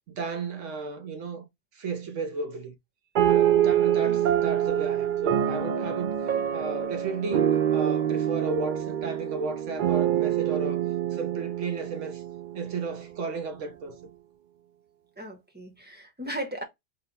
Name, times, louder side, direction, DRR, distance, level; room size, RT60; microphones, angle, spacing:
voice 1, 0.2-1.5 1.7-2.7 3.3-6.1 6.5-10.8 11.1-12.2 12.5-14.0, right 4 dB, 80° right, 1.2 m, -34 dB
sound 1, 3.1-12.9, right 10 dB, 60° right, 0.5 m, -25 dB
voice 2, 15.2-16.6, right 1 dB, 10° right, 0.8 m, -37 dB
4.0 x 2.1 x 4.0 m
omnidirectional pair, 1.3 m